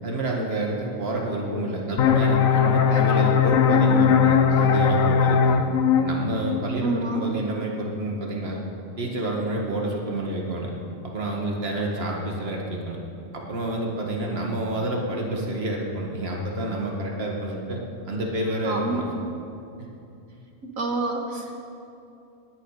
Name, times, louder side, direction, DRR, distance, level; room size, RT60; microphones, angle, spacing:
voice 1, 0.0-5.6 6.0-8.6 9.0-10.7 11.0-13.0 13.3-19.0, right 1 dB, 50° right, -1 dB, 1.9 m, -29 dB
sound 1, 2.0-7.4, left 6 dB, 85° left, 1.2 m, -20 dB
voice 2, 6.8-7.3 18.6-19.0 20.8-21.6, right 3 dB, 85° right, 1 dB, 2.1 m, -27 dB
19.0 x 9.9 x 4.9 m, 2.7 s
omnidirectional pair, 1.4 m